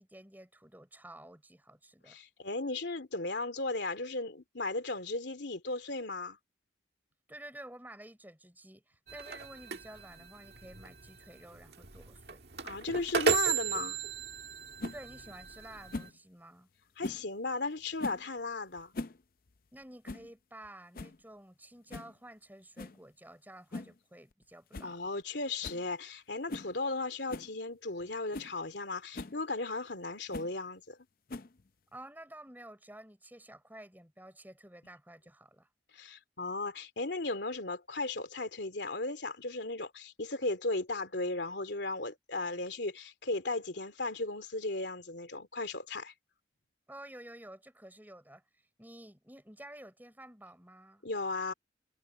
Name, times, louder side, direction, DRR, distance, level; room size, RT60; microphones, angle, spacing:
voice 1, 0.0-2.2 7.3-12.4 14.9-16.7 19.7-25.0 31.9-35.7 46.9-51.0, right 1 dB, 10° right, 6.6 m, -51 dB
voice 2, 2.1-6.4 12.6-14.0 17.0-18.9 24.8-31.0 35.9-46.1 51.0-51.5, left 3 dB, 75° left, 2.7 m, -36 dB
sound 1, 9.1-16.1, right 5 dB, 65° right, 1.8 m, -35 dB
sound 2, 14.8-15.0 15.9-16.2 17.0-17.3 18.0-18.3 18.8-19.2 19.5-19.6 20.1-20.3 20.6-20.7 20.9-21.2 21.9-22.1 22.8-23.0 23.7-24.0 24.3-24.4 24.7-24.9 25.2-25.3 25.6-25.9 26.5-26.7 27.3-27.5 28.0-28.1 28.3-28.5 29.1-29.4 30.3-30.5 31.3-31.7, left 2 dB, 50° left, 0.6 m, -41 dB
head